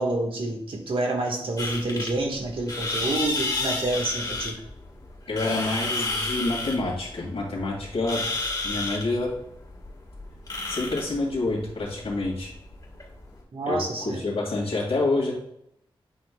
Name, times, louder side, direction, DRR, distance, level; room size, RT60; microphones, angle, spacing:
voice 1, 0.0-4.6 13.5-14.3, right 2 dB, 65° right, 1 dB, 1.5 m, -28 dB
sound 1, 1.6-13.4, left 2 dB, 40° left, 1.6 m, -32 dB
voice 2, 5.3-8.2 8.6-9.3 10.7-12.5 13.7-15.3, left 2 dB, 80° left, -4 dB, 2.2 m, -27 dB
9.3 x 5.4 x 2.3 m, 0.75 s
wide cardioid pair, 100°, 10 cm